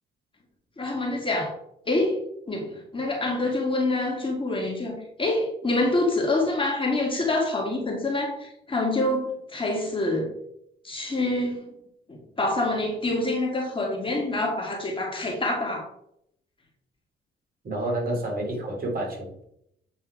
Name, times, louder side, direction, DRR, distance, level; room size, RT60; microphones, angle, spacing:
voice 1, 0.8-1.5 1.9-2.2 2.5-10.3 10.8-11.7 12.1-15.9, left 2 dB, 25° left, -1 dB, 2.5 m, -26 dB
voice 2, 17.6-19.4, right 1 dB, 45° right, -1 dB, 3.2 m, -29 dB
8.4 x 4.2 x 4.7 m, 0.75 s
cardioid pair, 90°, 20 cm